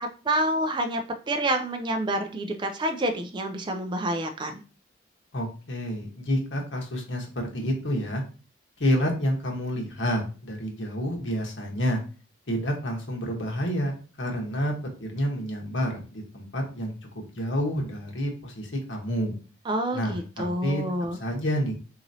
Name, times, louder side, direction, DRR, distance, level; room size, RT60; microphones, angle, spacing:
voice 1, 0.0-1.0 1.3-4.6 19.7-21.2, right 1 dB, 25° right, 5 dB, 0.3 m, -28 dB
voice 2, 5.3-8.2 8.8-12.0 12.5-16.9 17.3-19.4 19.9-20.8 21.2-21.7, equal, 80° left, 1 dB, 1.2 m, -29 dB
3.9 x 3.0 x 2.7 m, 0.35 s
head